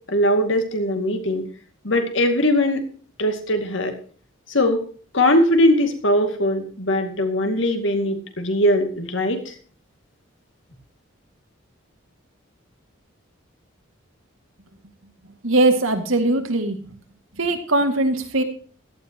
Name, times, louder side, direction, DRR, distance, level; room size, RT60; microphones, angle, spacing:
voice 1, 0.1-1.4 1.8-2.9 3.2-3.9 4.5-4.8 5.1-9.5, left 1 dB, 65° left, 6 dB, 2.4 m, -20 dB
voice 2, 15.4-16.8 17.4-18.4, right 2 dB, 80° right, 6 dB, 2.3 m, -20 dB
16.0 x 12.5 x 3.0 m, 0.42 s
head